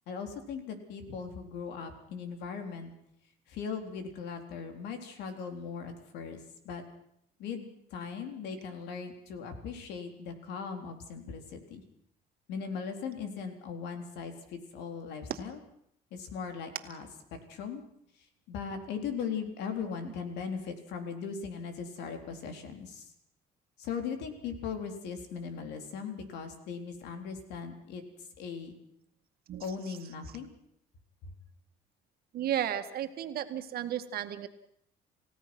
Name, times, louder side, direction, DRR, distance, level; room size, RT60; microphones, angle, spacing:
voice 1, 0.1-2.9 3.5-6.8 7.4-11.8 12.5-15.6 16.1-17.1 17.5-17.8 18.5-23.1 23.8-28.0 28.4-28.8 29.6-30.5 31.2-31.3, left 6 dB, 85° left, 6 dB, 3.8 m, -39 dB
voice 2, 32.3-34.5, right 11 dB, 65° right, 7 dB, 2.0 m, -33 dB
29.0 x 16.5 x 6.2 m, 0.71 s
cardioid pair, 110°, 17 cm